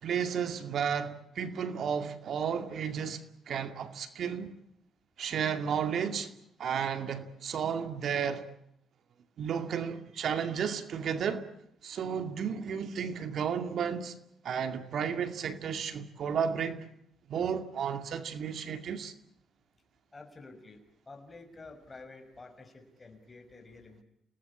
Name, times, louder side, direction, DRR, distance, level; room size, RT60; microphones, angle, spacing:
voice 1, 0.0-4.5 5.2-6.3 6.6-8.5 9.4-11.5 11.8-14.1 14.4-16.9 17.3-19.1, right 7 dB, 65° right, 2.3 m, -33 dB
voice 2, 20.1-24.0, left 3 dB, 25° left, 6.2 m, -50 dB
29.5 x 19.0 x 8.6 m
cardioid pair, 90°, 0 cm